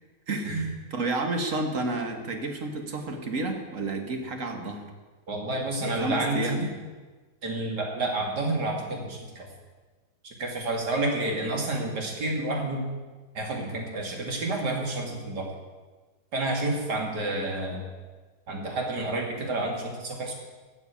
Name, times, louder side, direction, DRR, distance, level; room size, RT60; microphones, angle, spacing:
voice 1, 0.9-4.9 5.8-6.7, right 2 dB, 55° right, 4 dB, 1.8 m, -30 dB
voice 2, 5.3-6.7 7.4-9.5 10.2-12.9 13.3-15.5 16.3-17.8 18.5-20.3, right 2 dB, 90° right, 1 dB, 2.8 m, -29 dB
12.5 x 7.2 x 8.4 m, 1.3 s
omnidirectional pair, 1.7 m